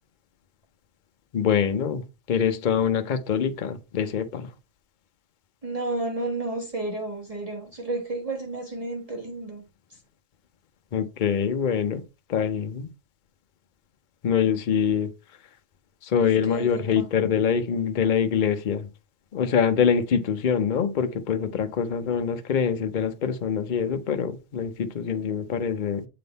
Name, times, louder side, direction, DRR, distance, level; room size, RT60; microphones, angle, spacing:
voice 1, 1.3-4.5 10.9-12.0 12.3-12.9 14.2-15.1 16.0-18.9 19.3-26.1, left 7 dB, 45° left, 0.8 m, -24 dB
voice 2, 5.6-9.6 16.2-17.1, right 2 dB, 30° right, 1.4 m, -32 dB
7.7 x 3.7 x 4.0 m
omnidirectional pair, 1.4 m